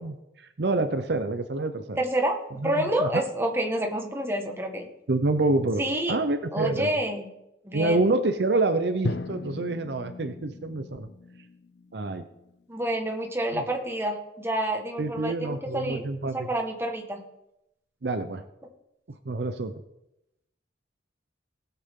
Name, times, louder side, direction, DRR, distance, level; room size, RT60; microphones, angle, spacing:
voice 1, 0.0-2.0 2.6-3.1 5.1-5.8 6.1-6.9 7.7-11.1 11.9-12.3 13.5-13.6 15.0-16.5 18.0-18.4 19.3-19.7, right 2 dB, 60° right, 9 dB, 0.7 m, -27 dB
voice 2, 2.0-2.4 2.6-4.8 5.8-6.1 6.5-7.3 7.6-8.1 12.7-16.0 16.3-17.2, right 1 dB, 15° right, 2 dB, 1.5 m, -28 dB
Drum, 9.0-13.0, left 2 dB, 65° left, 0.6 m, -37 dB
19.0 x 8.2 x 3.7 m, 0.87 s
head